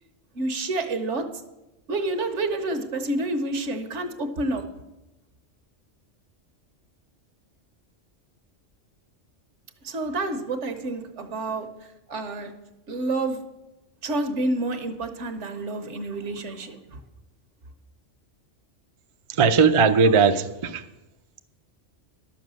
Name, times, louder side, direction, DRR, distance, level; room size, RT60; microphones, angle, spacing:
voice 1, 0.3-1.3 1.9-4.6 9.8-11.7 12.1-12.5 12.9-13.4 14.0-17.0, right 2 dB, 70° right, 8 dB, 1.3 m, -28 dB
voice 2, 19.4-20.8, right 5 dB, 45° right, 8 dB, 0.4 m, -18 dB
11.5 x 7.2 x 6.2 m, 1.0 s
omnidirectional pair, 1.3 m